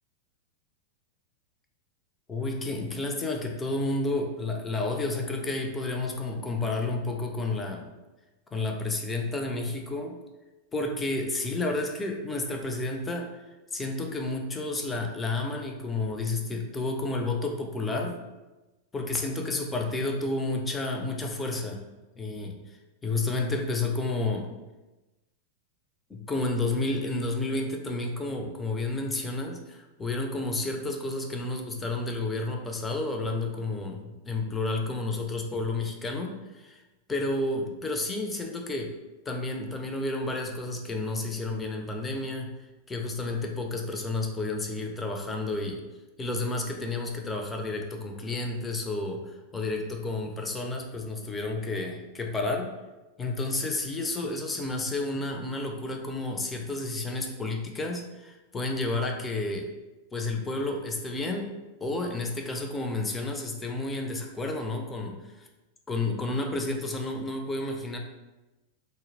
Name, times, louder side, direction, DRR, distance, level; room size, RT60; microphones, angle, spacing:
voice 1, 2.3-7.9 8.5-10.2 10.7-13.3 13.7-18.2 18.9-21.8 22.2-22.6 23.0-24.5 26.1-36.8 37.1-38.9 39.3-42.5 42.9-45.8 46.2-52.7 53.2-59.7 60.1-61.5 61.8-65.5 65.9-68.0, left 2 dB, 15° left, 2 dB, 0.4 m, -31 dB
2.2 x 2.0 x 3.1 m, 1.1 s
figure-of-eight pair, 90°, 0 cm